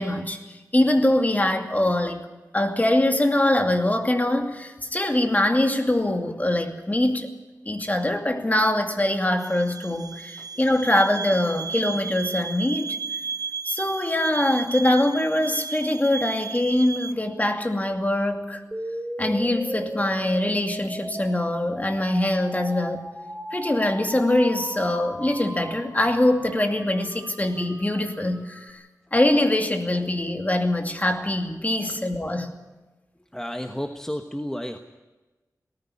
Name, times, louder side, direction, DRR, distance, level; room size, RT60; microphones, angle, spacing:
voice 1, 0.0-2.3 2.5-7.3 7.7-13.0 13.6-18.6 19.2-23.1 23.5-28.8 29.1-32.5, left 1 dB, 25° left, 5 dB, 2.5 m, -23 dB
sound 1, 9.4-17.1, right 5 dB, 75° right, 0.7 m, -34 dB
sound 2, 18.7-28.7, right 1 dB, 15° right, 3.0 m, -37 dB
voice 2, 33.3-34.8, equal, 10° left, 5 dB, 1.2 m, -32 dB
18.5 x 14.5 x 9.9 m, 1.2 s
wide cardioid pair, 70°, 6 cm